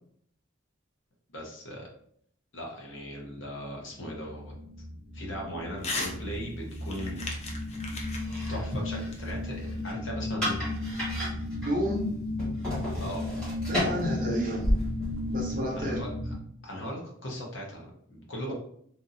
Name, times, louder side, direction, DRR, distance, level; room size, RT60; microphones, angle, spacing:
voice 1, 1.3-1.9 2.5-4.5 5.1-7.2 8.5-10.6 13.0-13.2 15.8-16.3 16.6-18.5, equal, 65° left, -1 dB, 0.8 m, -38 dB
sound 1, 3.9-16.4, left 2 dB, 25° right, 0.5 m, -35 dB
Crumpling crinkling / Tearing, 5.8-6.2 6.5-9.8, left 3 dB, 35° left, 0.5 m, -37 dB
sound 2, 8.1-15.5, equal, 5° left, 1.3 m, -34 dB
voice 2, 11.6-12.0 13.7-14.7 15.3-16.0 18.5-18.6, right 1 dB, 45° right, -3 dB, 0.8 m, -30 dB
2.7 x 2.5 x 2.6 m, 0.66 s
head